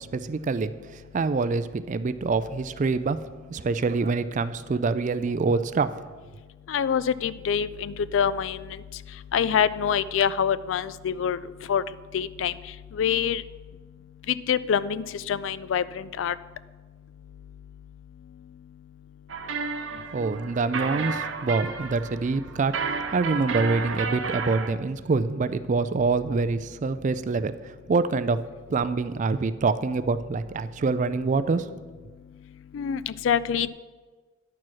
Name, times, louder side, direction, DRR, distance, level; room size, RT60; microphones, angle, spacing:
voice 1, 0.1-3.2 3.5-6.1 19.9-28.4 28.7-31.7, right 4 dB, 40° right, 13 dB, 0.3 m, -26 dB
voice 2, 6.7-8.6 9.3-11.4 11.7-11.8 12.1-12.5 13.0-13.4 14.5-16.3 32.7-33.7, left 8 dB, 65° left, 17 dB, 0.3 m, -25 dB
sound 1, 19.3-24.7, right 5 dB, 70° right, 0.8 m, -32 dB
10.5 x 4.6 x 6.2 m, 1.4 s
head